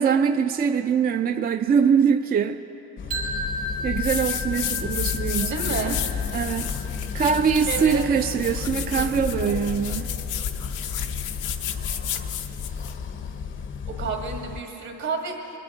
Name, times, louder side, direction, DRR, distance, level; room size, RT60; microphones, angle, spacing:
voice 1, 0.0-2.6 3.8-6.0 6.3-6.8 7.1-10.1, right 7 dB, 30° right, 0.4 m, -23 dB
sound 1, 3.0-14.6, left 6 dB, 40° left, 0.6 m, -32 dB
sound 2, 3.1-9.0, left 1 dB, 85° right, 2.7 m, -35 dB
sound 3, 3.9-13.0, left 9 dB, 90° left, 0.7 m, -32 dB
voice 2, 5.4-6.1 7.7-8.1 8.9-9.6 13.9-15.6, right 4 dB, 65° right, 2.1 m, -31 dB
21.5 x 10.5 x 3.9 m
cardioid pair, 90°, 30 cm